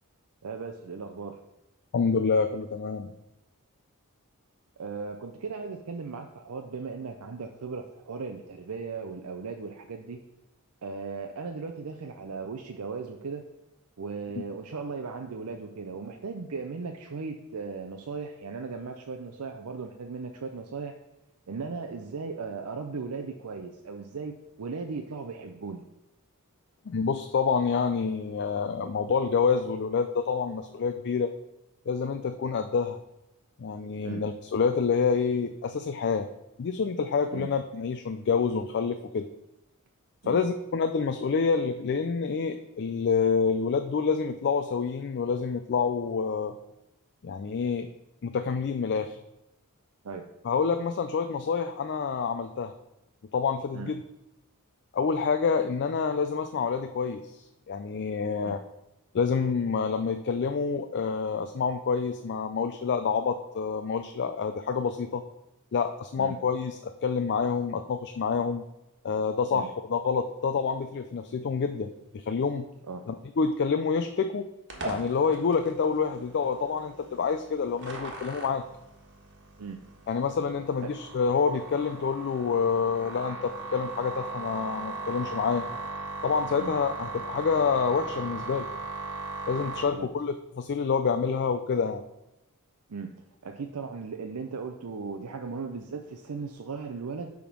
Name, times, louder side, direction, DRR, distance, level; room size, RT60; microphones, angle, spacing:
voice 1, 0.4-1.4 4.8-10.2 10.8-13.4 14.0-20.9 21.5-25.8 34.0-34.2 37.3-37.5 40.2-40.4 50.0-50.3 53.7-53.9 58.4-58.6 66.2-66.3 69.5-69.7 72.9-73.1 79.6-79.8 80.8-80.9 86.6-86.7 90.0-90.1 92.9-93.1 93.4-97.3, right 4 dB, 80° right, 4 dB, 0.6 m, -37 dB
voice 2, 1.9-3.1 26.9-31.3 31.9-33.0 33.6-36.3 36.6-39.3 40.2-46.5 47.2-47.9 48.2-49.2 50.4-52.7 53.3-54.0 54.9-58.6 59.1-65.2 65.7-68.6 69.0-71.9 72.1-72.7 73.1-74.5 74.8-78.6 80.1-85.7 86.2-88.7 89.5-92.0, left 5 dB, 50° left, 8 dB, 0.4 m, -27 dB
sound 1, 74.7-89.8, right 3 dB, 55° right, 1.5 m, -39 dB
8.6 x 3.6 x 6.0 m, 0.93 s
head